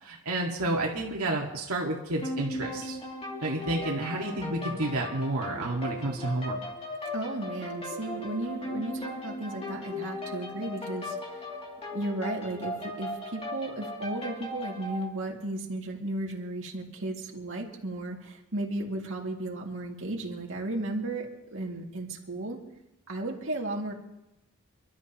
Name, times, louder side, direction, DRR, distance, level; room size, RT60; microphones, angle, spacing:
voice 1, 0.0-3.0 3.4-6.6, right 2 dB, 80° right, -2 dB, 2.1 m, -30 dB
sound 1, 2.2-15.0, left 1 dB, 25° left, 2.7 m, -37 dB
voice 2, 7.1-11.5 11.9-22.6 23.1-23.9, right 2 dB, 60° right, -1 dB, 2.4 m, -34 dB
29.0 x 12.5 x 3.0 m, 0.93 s
head